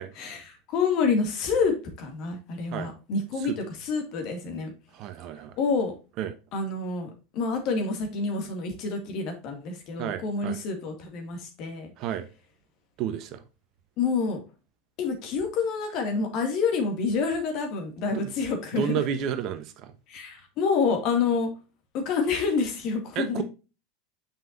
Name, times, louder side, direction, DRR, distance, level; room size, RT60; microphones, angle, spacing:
voice 1, 0.2-4.7 5.6-5.9 6.5-11.9 14.0-14.4 15.0-18.9 20.1-21.5 21.9-23.4, left 4 dB, 50° left, 5 dB, 2.1 m, -28 dB
voice 2, 4.9-5.6 6.2-6.4 10.0-10.6 12.0-12.3 13.0-13.4 18.1-18.3 18.7-19.9 23.1-23.4, right 9 dB, 50° right, 10 dB, 1.0 m, -31 dB
7.2 x 5.6 x 2.6 m, 0.31 s
hypercardioid pair, 85°, 0 cm